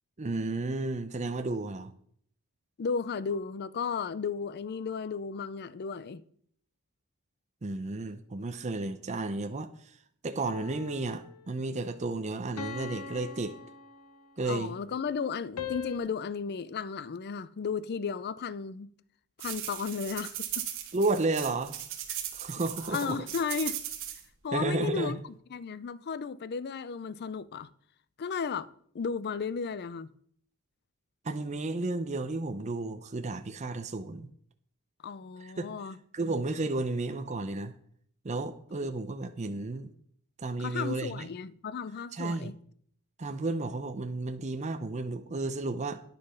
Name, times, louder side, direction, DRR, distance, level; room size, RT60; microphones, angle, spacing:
voice 1, 0.2-1.9 7.6-9.7 10.2-13.6 14.4-14.8 20.9-21.8 22.3-23.2 24.5-25.2 31.2-34.3 35.4-35.7 36.1-37.7 38.2-39.9 40.4-41.3 42.1-42.5 43.2-46.0, right 2 dB, 30° right, 0.6 m, -32 dB
voice 2, 2.8-6.2 14.4-18.9 19.4-20.7 22.1-22.2 22.9-23.8 24.4-25.2 25.5-27.7 28.2-30.1 35.0-36.0 40.6-42.5, left 5 dB, 45° left, 0.4 m, -34 dB
sound 1, 10.4-11.4 12.6-14.5 15.6-16.0, left 6 dB, 85° left, 0.9 m, -41 dB
sound 2, 19.4-24.2, right 11 dB, 60° right, 1.5 m, -38 dB
10.0 x 6.5 x 5.5 m
head